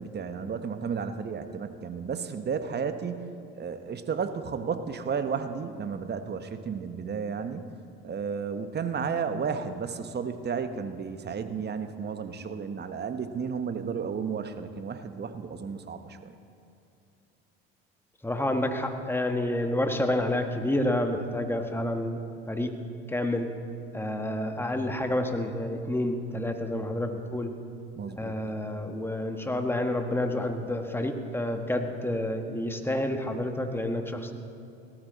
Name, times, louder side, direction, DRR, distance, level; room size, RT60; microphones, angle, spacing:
voice 1, 0.0-7.7 8.0-16.3 28.0-28.4, right 6 dB, 35° right, 9 dB, 1.1 m, -33 dB
voice 2, 18.2-22.2 22.5-22.7 23.1-23.5 23.9-27.5 28.1-34.3, left 1 dB, 5° left, 5 dB, 1.5 m, -29 dB
18.0 x 13.5 x 4.1 m, 2.7 s
hypercardioid pair, 70°, 30 cm